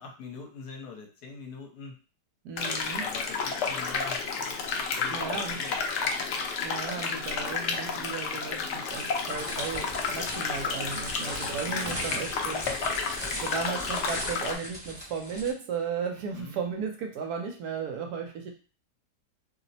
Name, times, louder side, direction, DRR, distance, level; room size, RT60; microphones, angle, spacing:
voice 1, 0.0-2.0 3.0-4.2 5.0-5.8 10.2-10.4 11.4-12.0 16.3-16.6, left 4 dB, 70° left, 1 dB, 1.2 m, -43 dB
voice 2, 2.4-3.0 5.1-5.6 6.6-12.6 13.4-18.5, right 6 dB, 70° right, 3 dB, 1.0 m, -35 dB
sound 1, 2.6-14.5, left 5 dB, 90° left, 0.6 m, -31 dB
sound 2, 8.9-15.5, equal, 10° right, 0.9 m, -39 dB
2.9 x 2.0 x 4.0 m, 0.35 s
omnidirectional pair, 1.8 m